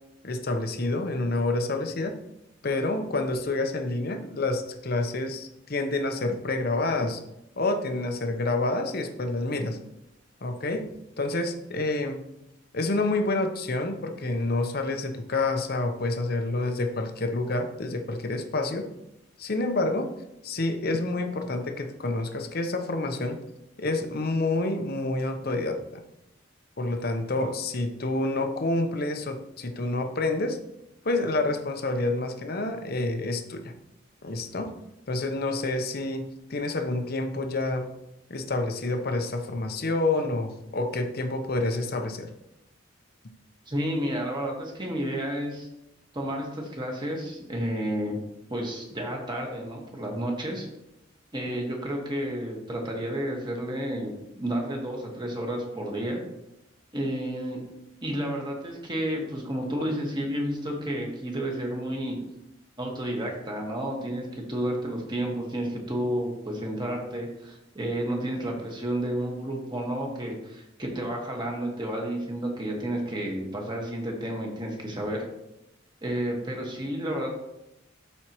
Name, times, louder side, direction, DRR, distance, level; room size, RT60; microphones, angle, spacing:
voice 1, 0.2-2.2 2.6-7.2 7.6-9.8 10.4-12.3 12.7-18.9 19.4-20.1 20.4-23.4 23.8-26.0 26.8-30.6 31.0-33.7 34.2-34.7 35.1-37.9 38.3-42.3, left 2 dB, 50° left, 6 dB, 0.8 m, -28 dB
voice 2, 43.7-45.7 46.1-48.2 48.5-50.7 51.3-56.2 56.9-57.6 58.0-62.2 62.8-75.2 76.0-77.3, right 1 dB, 25° right, 0 dB, 1.6 m, -31 dB
12.5 x 4.5 x 3.0 m, 0.88 s
head